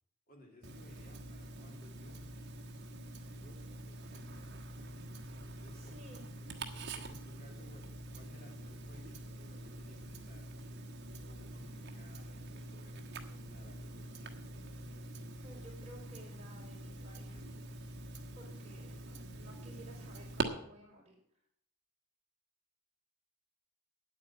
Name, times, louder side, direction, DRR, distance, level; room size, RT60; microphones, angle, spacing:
voice 1, 0.3-2.3 3.3-5.0 5.5-6.0 6.4-10.5 11.2-13.0 13.4-14.5, left 1 dB, 40° left, 1 dB, 2.5 m, -60 dB
Tick-tock, 0.6-20.4, right 2 dB, 50° right, 1.3 m, -45 dB
voice 2, 5.7-6.2 15.4-17.4 18.3-21.2, right 1 dB, 30° right, -1 dB, 4.3 m, -56 dB
9.5 x 8.6 x 8.4 m, 0.67 s
head